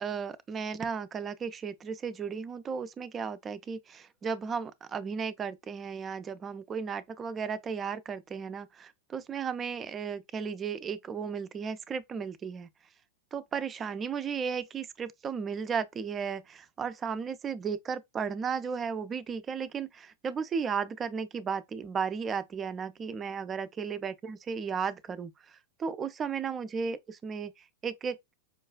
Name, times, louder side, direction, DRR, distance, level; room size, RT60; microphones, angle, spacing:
voice 1, 0.0-12.7 13.3-25.3 25.8-27.5 27.8-28.2, right 6 dB, 25° right, 0.4 m, -34 dB
5.0 x 2.3 x 2.2 m
hypercardioid pair, 95°, 0 cm